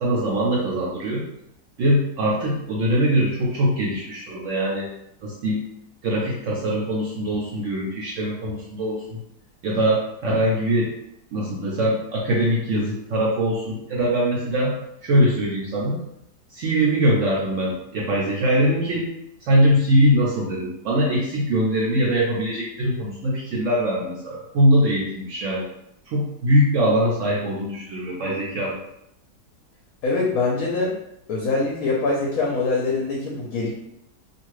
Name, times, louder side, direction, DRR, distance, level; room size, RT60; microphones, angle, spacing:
voice 1, 0.0-1.3 1.8-4.9 5.2-5.6 6.0-9.2 9.6-10.9 11.3-14.8 15.0-16.0 16.5-19.1 19.5-25.7 26.1-28.8, equal, 75° right, -4 dB, 0.7 m, -22 dB
voice 2, 30.0-30.9 31.3-33.7, left 3 dB, 70° left, -2 dB, 0.9 m, -23 dB
2.7 x 2.5 x 3.0 m, 0.79 s
omnidirectional pair, 1.8 m